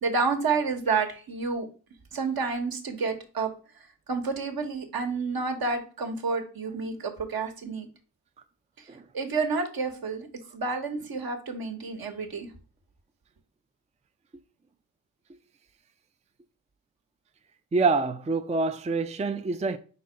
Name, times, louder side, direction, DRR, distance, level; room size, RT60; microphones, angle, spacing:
voice 1, 0.0-1.7 2.1-3.5 4.1-7.9 9.1-10.3 10.5-12.5, right 4 dB, 60° right, 1.5 m, -29 dB
voice 2, 17.7-19.8, right 3 dB, 20° right, 0.5 m, -26 dB
4.6 x 4.3 x 5.2 m
cardioid pair, 80°, 40 cm